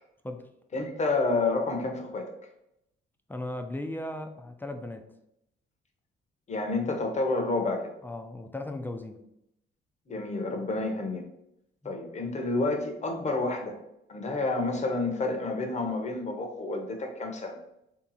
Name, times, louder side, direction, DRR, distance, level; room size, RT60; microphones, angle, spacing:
voice 1, 0.7-2.3 6.5-7.9 10.1-11.2 11.8-13.8 14.1-17.6, left 3 dB, 35° left, 4 dB, 0.9 m, -29 dB
voice 2, 3.3-5.1 8.0-9.2 11.8-11.9, left 1 dB, 10° left, 6 dB, 0.5 m, -37 dB
3.5 x 2.9 x 4.0 m, 0.80 s
cardioid pair, 90°, 20 cm